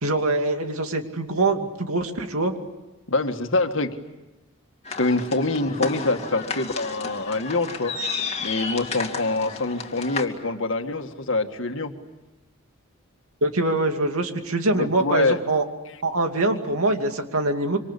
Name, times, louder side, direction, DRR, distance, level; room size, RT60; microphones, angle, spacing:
voice 1, 0.0-2.5 13.4-15.6 16.0-17.8, right 2 dB, 85° right, 5 dB, 2.5 m, -24 dB
voice 2, 3.1-4.0 5.0-7.9 8.4-11.9 14.7-15.4, left 2 dB, 60° left, 6 dB, 2.0 m, -25 dB
sound 1, 4.9-10.3, left 4 dB, 30° left, 2.4 m, -32 dB
26.5 x 25.5 x 8.5 m, 1.0 s
head